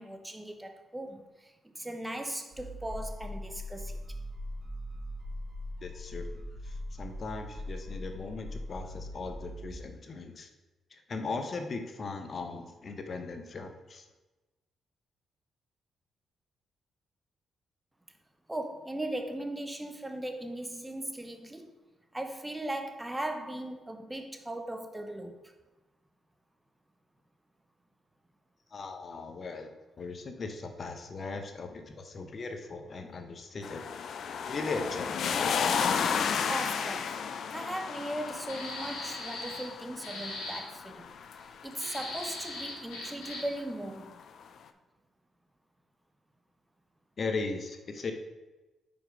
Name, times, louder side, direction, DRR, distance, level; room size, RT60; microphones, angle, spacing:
voice 1, 0.0-4.0 18.5-21.8 22.1-25.5 36.5-37.2 37.5-44.1, right 1 dB, 10° right, 6 dB, 0.8 m, -38 dB
sound 1, 2.5-9.8, left 1 dB, 55° right, 1.5 m, -40 dB
voice 2, 5.8-10.5 10.9-14.1 28.7-33.9 34.5-35.2 47.2-48.1, left 3 dB, 50° left, 6 dB, 0.9 m, -38 dB
sound 2, 33.6-42.7 44.0-44.1, left 6 dB, 65° left, 0.4 m, -33 dB
sound 3, 38.5-39.7 40.0-40.6 41.7-43.6, left 2 dB, 85° left, 1.9 m, -40 dB
5.3 x 4.5 x 5.1 m, 1.1 s
supercardioid pair, 65°, 0 cm